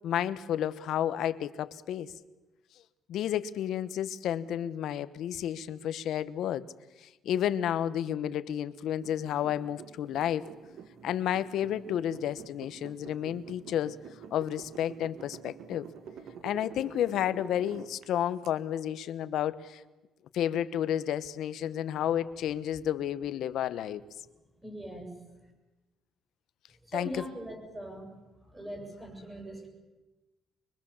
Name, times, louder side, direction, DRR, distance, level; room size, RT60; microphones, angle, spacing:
voice 1, 0.0-2.1 3.1-6.7 7.0-10.5 11.0-14.0 14.3-15.9 16.4-19.8 20.3-24.0 26.9-27.2, left 10 dB, 70° left, 13 dB, 1.1 m, -31 dB
sound 1, 9.0-18.5, right 7 dB, 65° right, 1.7 m, -48 dB
voice 2, 24.6-25.2 26.8-28.1 28.5-29.7, right 1 dB, 10° right, 2 dB, 7.1 m, -41 dB
24.0 x 23.5 x 7.2 m, 1.1 s
cardioid pair, 140°, 0 cm